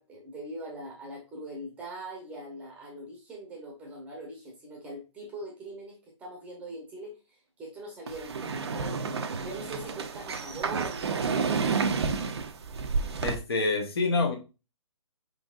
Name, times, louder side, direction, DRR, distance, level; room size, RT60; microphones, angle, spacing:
voice 1, 0.0-12.3, right 1 dB, 10° right, 0 dB, 0.9 m, -42 dB
sound 1, 8.1-13.3, right 5 dB, 55° right, 0.6 m, -30 dB
voice 2, 13.2-14.4, left 3 dB, 50° left, 4 dB, 1.2 m, -26 dB
4.8 x 3.9 x 2.4 m, 0.30 s
figure-of-eight pair, 145°, 17 cm